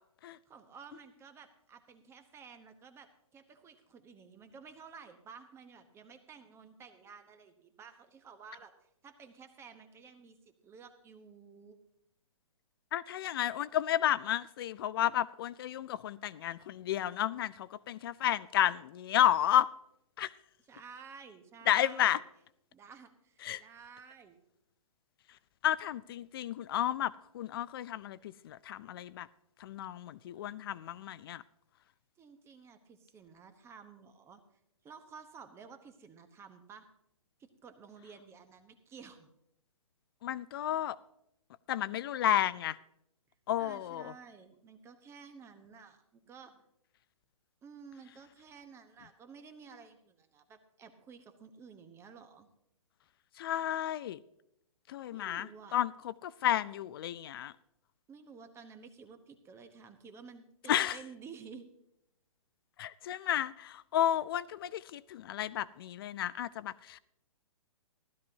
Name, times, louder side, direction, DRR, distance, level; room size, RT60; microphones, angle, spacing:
voice 1, 0.5-11.8 20.7-22.2 22.7-24.4 32.2-34.4 34.8-36.9 37.4-39.3 43.6-46.6 47.6-52.5 55.1-55.8 58.1-61.6, right 6 dB, 15° right, 0.9 m, -53 dB
voice 2, 12.9-19.7 20.2-20.3 21.7-22.2 23.4-23.6 25.6-29.3 29.6-31.4 40.2-41.0 41.7-42.8 43.5-44.1 53.4-54.2 54.9-57.5 60.7-61.0 62.8-67.0, left 11 dB, 40° left, 0.4 m, -32 dB
15.5 x 13.0 x 2.7 m
hypercardioid pair, 135°, 18 cm